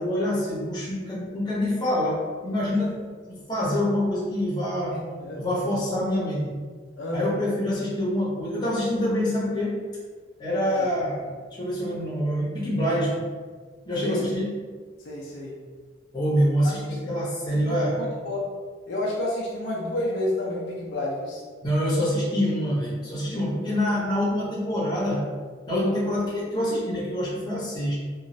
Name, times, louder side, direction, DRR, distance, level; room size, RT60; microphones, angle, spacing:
voice 1, 0.0-2.9 3.3-5.0 5.4-6.5 7.1-9.8 10.4-11.2 11.5-13.3 13.9-14.5 16.1-18.0 21.6-25.2 25.7-28.0, equal, 20° left, -7 dB, 0.7 m, -26 dB
voice 2, 4.9-5.4 7.0-7.3 10.7-10.9 14.0-14.3 15.0-15.6 17.5-18.5 18.9-21.4, left 1 dB, 65° left, -4 dB, 0.5 m, -30 dB
3.0 x 2.3 x 2.6 m, 1.5 s
head